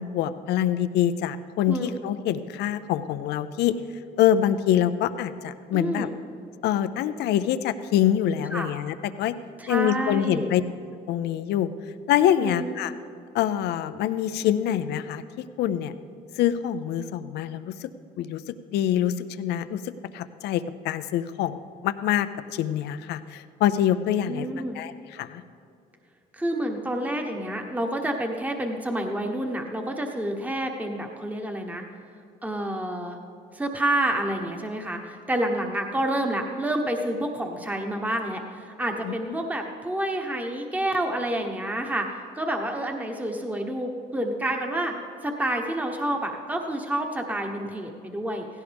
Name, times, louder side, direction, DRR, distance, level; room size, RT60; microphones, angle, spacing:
voice 1, 0.0-3.8 4.2-6.1 6.6-9.4 9.7-10.6 11.1-11.7 12.1-12.9 13.3-15.2 15.6-15.9 16.4-17.9 18.2-24.5 24.7-25.4 39.0-39.1, left 10 dB, 80° left, 12 dB, 0.6 m, -25 dB
voice 2, 5.7-6.1 8.5-8.7 9.6-10.5 12.4-12.7 24.3-24.8 26.3-31.8 32.4-33.2 33.5-44.9 45.2-48.5, right 1 dB, 10° right, 3 dB, 1.2 m, -29 dB
16.5 x 16.5 x 3.5 m, 2.4 s
cardioid pair, 110°, 17 cm